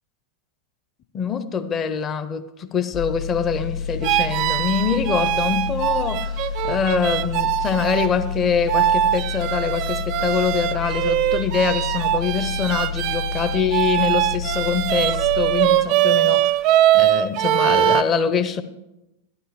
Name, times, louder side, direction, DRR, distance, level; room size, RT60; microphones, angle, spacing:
voice 1, 1.1-6.4 6.6-16.6 16.9-18.6, left 6 dB, 25° left, 0.6 m, -24 dB
sound 1, 2.9-16.0 16.4-16.6, left 6 dB, 45° left, 1.6 m, -29 dB
sound 2, 4.0-8.1 8.7-18.0, right 13 dB, 40° right, 0.4 m, -21 dB
12.5 x 11.0 x 3.1 m
figure-of-eight pair, 90°, 0 cm